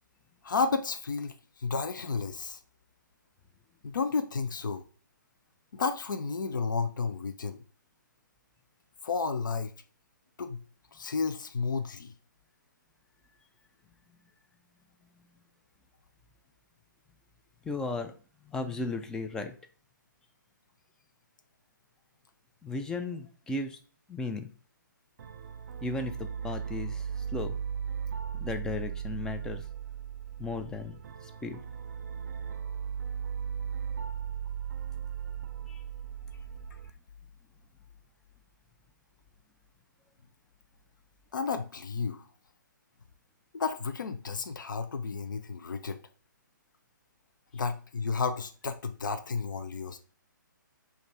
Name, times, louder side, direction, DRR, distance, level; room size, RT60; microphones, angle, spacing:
voice 1, 0.4-2.6 3.8-4.8 5.7-7.6 9.0-9.7 10.4-10.6 10.9-12.1 41.3-42.2 43.5-46.0 47.5-50.0, left 5 dB, 70° left, 0.5 m, -32 dB
voice 2, 17.6-18.1 18.4-19.5 22.6-23.8 24.1-24.5 25.8-27.6 28.3-29.7 30.4-31.6 35.7-35.8, left 3 dB, 5° left, 0.3 m, -35 dB
sound 1, 25.2-36.9, right 8 dB, 55° right, 0.5 m, -37 dB
5.1 x 2.5 x 3.3 m
figure-of-eight pair, 135°, 11 cm